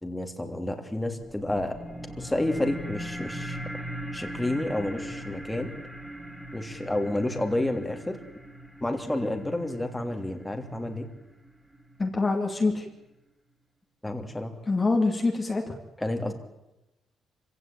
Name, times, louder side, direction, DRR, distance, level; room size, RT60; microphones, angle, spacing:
voice 1, 0.0-1.8 2.2-3.6 4.1-5.7 6.5-8.2 8.8-11.1 14.0-14.5 16.0-16.3, left 1 dB, 10° left, 4 dB, 3.1 m, -30 dB
sound 1, 1.2-12.2, right 1 dB, 10° right, 3.1 m, -40 dB
voice 2, 12.0-12.9 14.7-15.7, left 3 dB, 25° left, 2 dB, 2.7 m, -25 dB
25.0 x 16.5 x 9.1 m, 0.93 s
cardioid pair, 90°, 0 cm